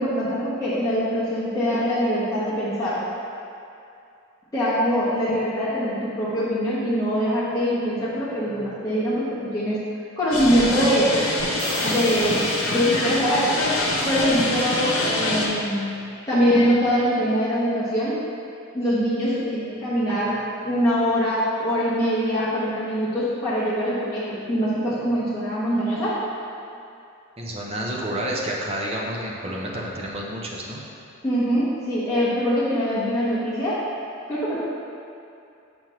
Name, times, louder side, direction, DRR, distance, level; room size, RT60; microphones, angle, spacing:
voice 1, 0.0-3.0 4.5-9.8 10.2-11.1 11.8-13.5 14.0-16.0 16.3-18.2 18.7-26.2 31.2-33.8 34.3-34.6, equal, 15° left, -12 dB, 1.1 m, -23 dB
sound 1, 10.3-15.5, left 2 dB, 80° left, 1.0 m, -25 dB
sound 2, 11.4-13.5, right 2 dB, 85° right, 1.1 m, -36 dB
voice 2, 27.4-30.8, right 1 dB, 30° right, -3 dB, 0.8 m, -29 dB
7.4 x 5.3 x 3.1 m, 2.6 s
head